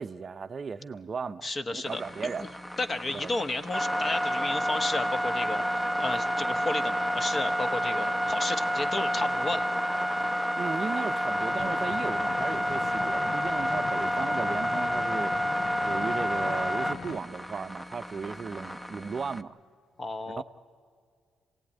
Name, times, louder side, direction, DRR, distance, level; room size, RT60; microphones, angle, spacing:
voice 1, 0.0-2.5 3.1-3.3 10.5-15.4 15.8-19.6 20.3-20.4, right 5 dB, 40° right, 0.6 m, -36 dB
voice 2, 1.4-2.5 2.8-9.6 20.0-20.4, left 2 dB, 30° left, 1.2 m, -33 dB
sound 1, 1.8-19.4, equal, 10° left, 0.8 m, -29 dB
Vehicle, 11.5-17.2, left 7 dB, 60° left, 0.6 m, -42 dB
26.5 x 17.0 x 9.9 m
cardioid pair, 90°, 0 cm